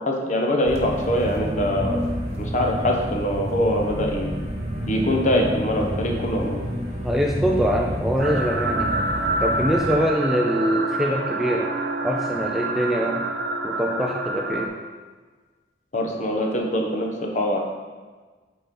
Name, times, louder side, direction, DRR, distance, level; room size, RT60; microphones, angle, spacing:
voice 1, 0.0-2.0 2.4-4.3 4.9-6.6 15.9-17.6, left 1 dB, 40° left, 1 dB, 0.9 m, -23 dB
sound 1, 0.6-10.0, equal, 35° right, 1.0 m, -29 dB
voice 2, 7.0-9.0 9.4-11.7 12.0-13.3 13.6-14.7, equal, ahead, 0 dB, 0.4 m, -23 dB
sound 2, 8.2-14.7, right 2 dB, 60° right, 0.6 m, -27 dB
8.4 x 4.3 x 3.8 m, 1.4 s
head